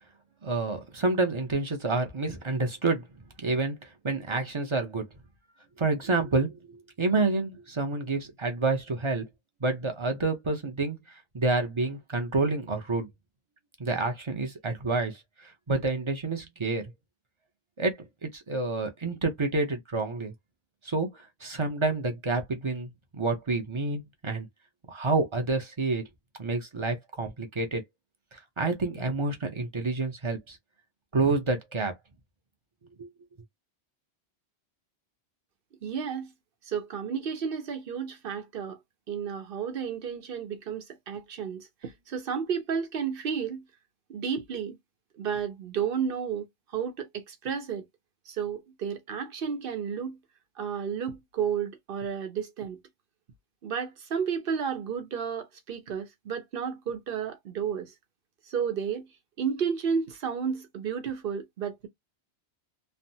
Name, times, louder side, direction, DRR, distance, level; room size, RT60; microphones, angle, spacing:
voice 1, 0.4-3.1 3.4-5.1 5.8-9.3 9.6-11.0 11.3-13.1 13.8-16.9 17.8-18.0 18.2-20.3 20.8-24.5 24.9-26.1 26.4-27.8 28.3-30.6 31.1-31.9 33.0-33.1, right 3 dB, 30° right, 0.6 m, -28 dB
voice 2, 35.8-36.3 36.6-38.8 39.1-43.6 44.1-44.8 45.2-46.5 46.7-47.8 48.3-50.2 50.6-52.8 53.6-57.9 58.5-59.1 59.4-61.9, right 7 dB, 60° right, 0.9 m, -32 dB
3.3 x 2.0 x 2.7 m
omnidirectional pair, 1.1 m